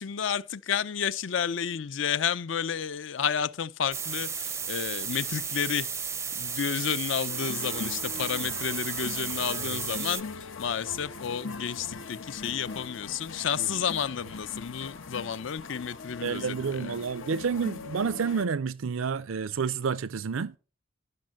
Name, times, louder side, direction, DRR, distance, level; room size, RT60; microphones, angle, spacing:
voice 1, 0.0-5.9 6.4-17.0, left 7 dB, 65° left, 0.5 m, -31 dB
sound 1, 3.9-10.2, right 6 dB, 15° right, 0.5 m, -34 dB
sound 2, 7.3-18.5, left 4 dB, 90° left, 1.0 m, -41 dB
voice 2, 16.2-20.5, right 5 dB, 85° right, 0.5 m, -29 dB
11.5 x 6.4 x 7.5 m
head